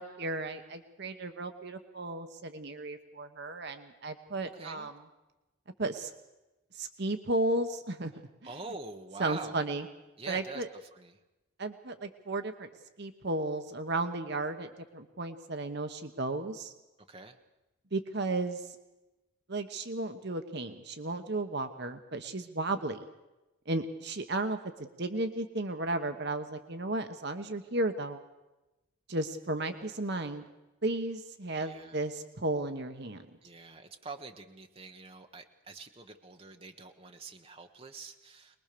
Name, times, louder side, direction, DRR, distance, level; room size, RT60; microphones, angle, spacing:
voice 1, 0.0-4.9 5.8-6.1 6.7-8.1 9.2-9.9 10.3-10.7 11.6-12.7 13.0-16.7 17.9-18.6 19.5-23.0 23.7-28.2 29.1-30.4 30.8-33.3, right 2 dB, 50° right, 8 dB, 1.1 m, -34 dB
voice 2, 4.4-4.9 8.1-9.7 10.2-11.2 17.1-17.4 31.6-32.0 33.4-38.6, right 3 dB, 25° right, 4 dB, 1.3 m, -45 dB
23.0 x 21.0 x 6.9 m, 1.0 s
head